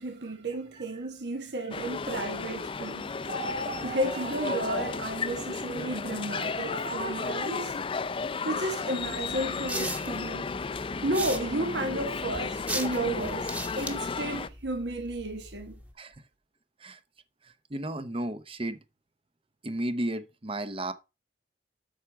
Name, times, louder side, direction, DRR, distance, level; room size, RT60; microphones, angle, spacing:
voice 1, 0.0-3.1 3.8-7.7 8.4-10.5 11.0-15.8, right 1 dB, 70° right, 1.4 m, -33 dB
sound 1, 1.7-14.5, left 4 dB, 30° left, 0.4 m, -34 dB
sound 2, 3.2-5.0 6.3-7.4, right 3 dB, 90° right, 2.9 m, -38 dB
sound 3, 9.0-15.9, right 1 dB, 10° right, 1.2 m, -39 dB
voice 2, 17.7-18.8 19.6-20.9, right 1 dB, 30° right, 0.8 m, -33 dB
8.3 x 5.9 x 4.6 m
head